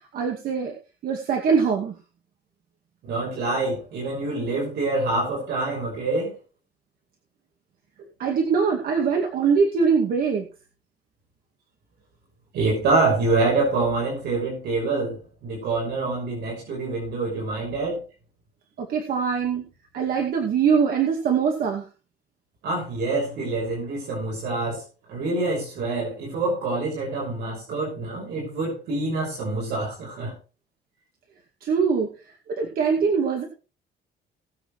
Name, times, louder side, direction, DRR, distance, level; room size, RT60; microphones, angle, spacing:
voice 1, 0.1-0.7 1.0-1.9 8.2-10.5 18.8-19.6 19.9-21.8 31.6-32.1 32.6-33.4, right 6 dB, 55° right, 1 dB, 2.3 m, -22 dB
voice 2, 3.1-6.4 12.5-18.0 22.6-24.8 25.1-30.3, right 3 dB, 70° right, -2 dB, 6.1 m, -26 dB
20.5 x 8.0 x 3.2 m, 0.33 s
cardioid pair, 180°, 18 cm